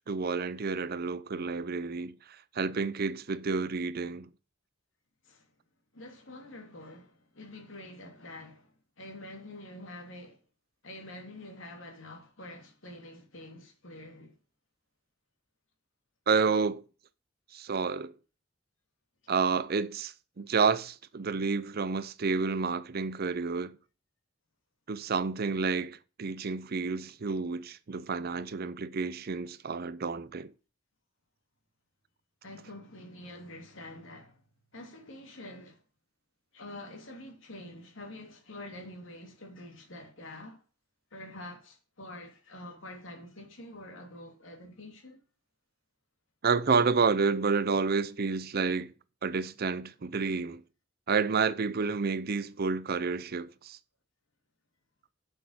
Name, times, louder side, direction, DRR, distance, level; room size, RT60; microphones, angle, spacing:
voice 1, 0.0-2.2 2.5-4.3 16.3-16.8 17.5-18.1 19.3-23.8 24.9-30.5 46.4-48.9 49.2-50.6 51.1-53.8, right 5 dB, 50° right, 0.6 m, -29 dB
voice 2, 5.9-10.4 10.8-14.4 32.4-34.4 34.7-35.8 36.5-40.6 41.1-45.2, left 1 dB, 80° left, 2.8 m, -46 dB
7.4 x 6.2 x 6.3 m
head